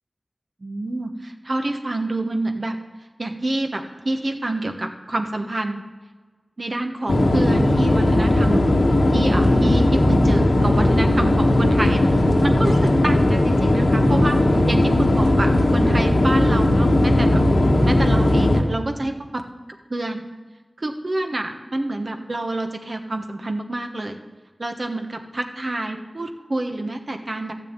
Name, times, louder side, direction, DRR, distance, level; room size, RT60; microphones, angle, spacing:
voice 1, 0.6-2.8 3.2-5.8 6.6-8.6 9.1-12.0 12.4-17.4 17.8-19.4 19.9-20.3 20.8-24.2 24.6-27.5, right 2 dB, 55° right, 5 dB, 1.2 m, -27 dB
sound 1, 7.1-18.6, left 1 dB, 80° left, 1.4 m, -17 dB
13.0 x 6.6 x 8.9 m, 1.4 s
wide cardioid pair, 45°, 0 cm